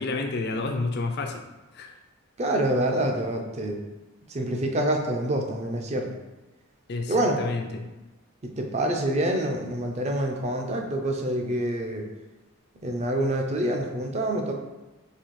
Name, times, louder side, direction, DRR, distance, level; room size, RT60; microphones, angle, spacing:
voice 1, 0.0-1.4 1.7-1.9 6.9-7.9, left 3 dB, 45° left, 5 dB, 0.4 m, -30 dB
voice 2, 2.4-3.8 4.3-6.1 7.1-7.4 8.4-12.0 12.8-14.5, right 1 dB, 30° right, 3 dB, 0.4 m, -26 dB
4.1 x 2.7 x 3.0 m, 1.1 s
head